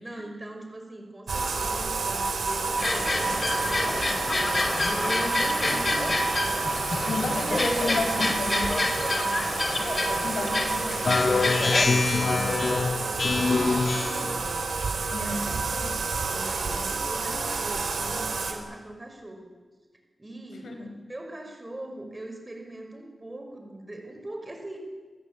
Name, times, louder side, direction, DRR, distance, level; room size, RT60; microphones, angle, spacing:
voice 1, 0.0-6.5 9.1-14.8 15.1-16.0 16.3-19.5 20.2-20.8 21.1-24.8, right 1 dB, 20° right, 3 dB, 5.5 m, -42 dB
Bathtub (filling or washing), 1.3-18.5, right 4 dB, 80° right, 4.6 m, -29 dB
sound 1, 2.8-11.9, left 2 dB, 30° left, 2.7 m, -28 dB
voice 2, 5.6-6.0 7.1-8.8 10.2-11.0 15.1-15.5 20.6-20.9, left 3 dB, 90° left, 5 dB, 4.8 m, -32 dB
Speech synthesizer, 11.0-14.4, left 4 dB, 50° left, 1.6 m, -24 dB
28.0 x 21.5 x 8.6 m, 1.4 s
wide cardioid pair, 145°, 0 cm